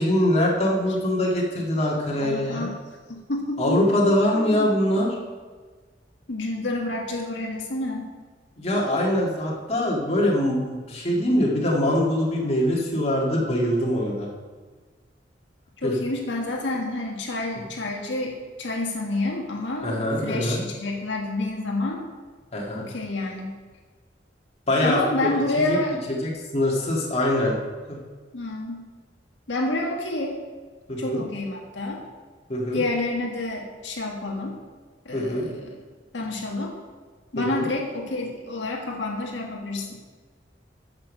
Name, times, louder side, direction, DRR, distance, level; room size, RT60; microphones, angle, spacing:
voice 1, 0.0-2.7 3.6-5.1 8.6-14.3 15.8-15.9 19.8-20.6 22.5-22.9 24.7-25.3 25.7-25.8 26.1-27.6 27.9-28.0 30.9-31.2 32.5-32.8 35.1-35.4 37.4-37.7, left 1 dB, 35° left, -3 dB, 2.0 m, -23 dB
voice 2, 2.2-2.8 3.1-3.8 4.3-4.7 6.3-8.1 8.7-8.8 15.8-22.1 22.7-23.6 24.8-26.0 28.3-28.9 29.5-30.4 31.0-32.0 32.7-34.6 35.0-35.7 36.1-36.8 37.3-40.0, left 2 dB, 85° left, 0 dB, 1.7 m, -29 dB
8.9 x 7.3 x 6.4 m, 1.4 s
head